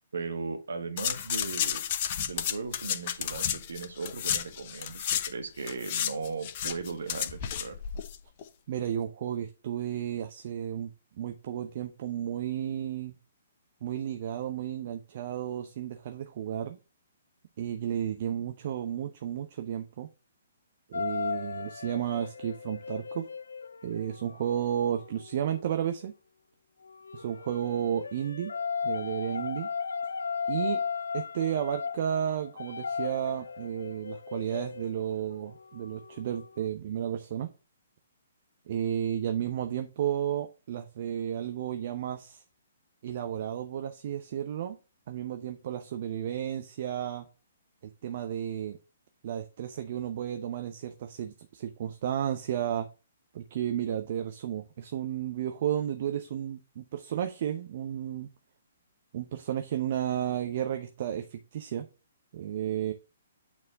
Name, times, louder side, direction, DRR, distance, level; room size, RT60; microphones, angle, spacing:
voice 1, 0.1-1.8 2.2-7.8, right 4 dB, 65° right, 7 dB, 1.4 m, -37 dB
sound 1, 1.0-5.3 5.6-8.2 8.4-8.5, left 9 dB, 40° left, 0.8 m, -32 dB
voice 2, 8.7-13.1 13.8-16.8 17.6-20.1 20.9-23.3 23.8-26.1 27.1-28.5 28.8-29.7 30.5-30.8 31.1-37.5 38.7-42.4 43.0-44.8 45.1-47.3 48.0-48.8 49.2-52.9 53.3-58.3 59.1-61.9 62.3-62.9, right 10 dB, 45° right, 7 dB, 0.8 m, -33 dB
sound 2, 20.9-25.7 26.9-36.7, left 6 dB, 70° left, 0.3 m, -36 dB
8.7 x 4.2 x 3.8 m, 0.32 s
figure-of-eight pair, 125°, 0 cm